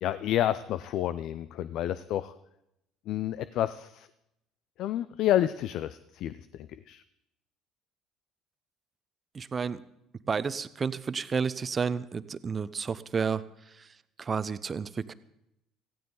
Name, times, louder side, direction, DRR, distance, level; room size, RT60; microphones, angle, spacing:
voice 1, 0.0-2.3 3.1-4.1 4.8-7.0, left 12 dB, 60° left, 14 dB, 0.5 m, -30 dB
voice 2, 9.3-9.8 10.3-13.4 13.8-13.9 14.2-15.1, right 5 dB, 35° right, 14 dB, 0.8 m, -31 dB
17.5 x 15.5 x 4.0 m, 0.82 s
hypercardioid pair, 65°, 0 cm